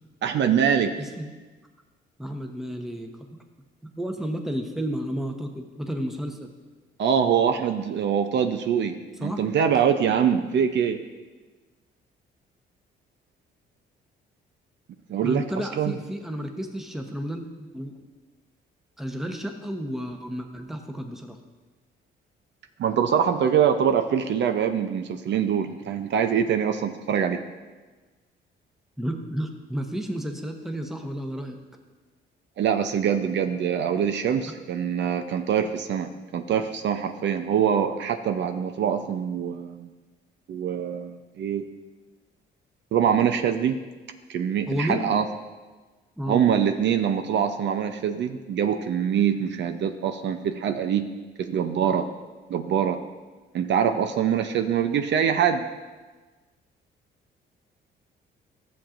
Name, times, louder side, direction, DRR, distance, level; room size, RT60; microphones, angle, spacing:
voice 1, 0.2-0.9 7.0-11.0 15.1-15.4 15.8-15.9 22.8-27.4 32.6-39.9 40.5-41.7 42.9-43.8 44.3-45.2 46.3-51.1 51.4-52.1 52.5-53.0 53.5-55.6, right 8 dB, 65° right, 7 dB, 0.6 m, -24 dB
voice 2, 1.0-1.3 2.2-3.1 3.9-6.5 9.2-9.4 15.2-18.0 19.0-21.4 29.0-31.6 44.7-45.0 46.2-46.4, equal, ahead, 4 dB, 0.9 m, -32 dB
13.5 x 7.2 x 2.5 m, 1.3 s
cardioid pair, 90°, 20 cm